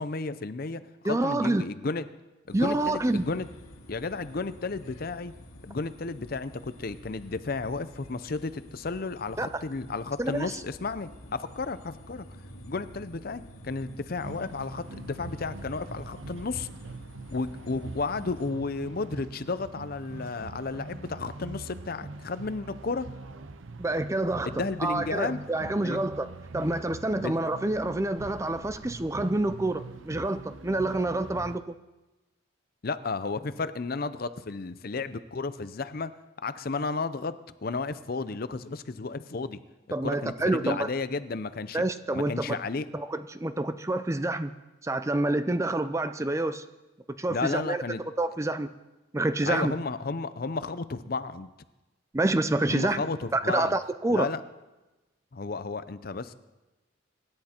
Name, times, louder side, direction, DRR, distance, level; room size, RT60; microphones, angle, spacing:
voice 1, 0.0-2.0 2.5-3.5 3.9-5.3 5.6-12.3 12.7-16.7 17.3-23.1 24.5-25.4 25.8-26.0 27.2-27.3 32.8-36.1 36.4-37.4 37.6-39.6 40.0-41.8 42.1-42.9 47.3-48.0 49.5-51.5 52.7-53.8 54.1-54.4 55.3-56.3, left 3 dB, 45° left, 13 dB, 0.6 m, -33 dB
voice 2, 1.0-1.7 2.5-3.2 9.4-9.6 10.2-10.6 23.8-24.5 24.8-31.7 39.9-40.9 41.7-42.6 42.9-44.5 44.8-46.6 47.2-47.8 48.2-48.7 49.1-49.8 52.1-53.1 53.3-54.3, right 2 dB, 15° right, 11 dB, 0.4 m, -27 dB
sound 1, 2.5-18.5, equal, 90° left, 1.9 m, -48 dB
sound 2, 14.2-31.6, right 2 dB, 65° right, 0.7 m, -43 dB
25.0 x 11.0 x 4.4 m, 1.1 s
head